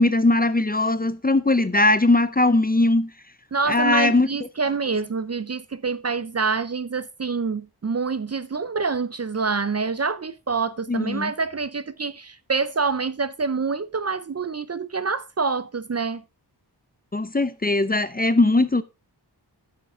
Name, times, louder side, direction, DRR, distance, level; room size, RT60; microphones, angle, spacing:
voice 1, 0.0-3.1 3.7-4.3 10.9-11.3 17.1-18.8, left 2 dB, 20° left, 0.6 m, -20 dB
voice 2, 3.5-16.2, right 4 dB, 35° right, 0.5 m, -26 dB
9.0 x 6.6 x 4.1 m
wide cardioid pair, 80°, 42 cm